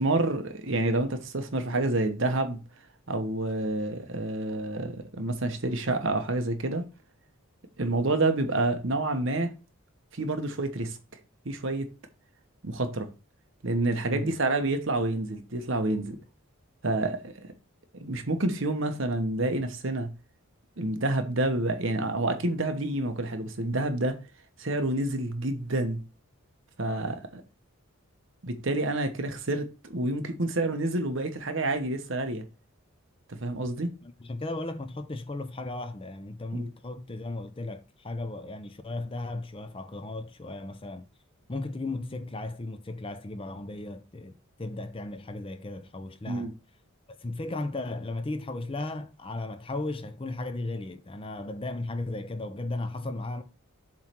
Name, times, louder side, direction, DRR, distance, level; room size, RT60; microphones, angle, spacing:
voice 1, 0.0-2.6 3.1-6.8 7.8-9.5 10.1-11.0 11.4-11.9 12.6-13.1 13.6-16.2 16.8-17.5 18.0-20.1 20.8-24.2 24.6-26.0 26.8-27.4 28.4-32.4 33.3-33.9 36.5-36.7 46.3-46.5, right 2 dB, 60° right, 1.0 m, -28 dB
voice 2, 34.0-41.1 41.5-46.5 47.1-53.4, left 2 dB, 25° left, 0.5 m, -35 dB
7.3 x 3.2 x 5.9 m
head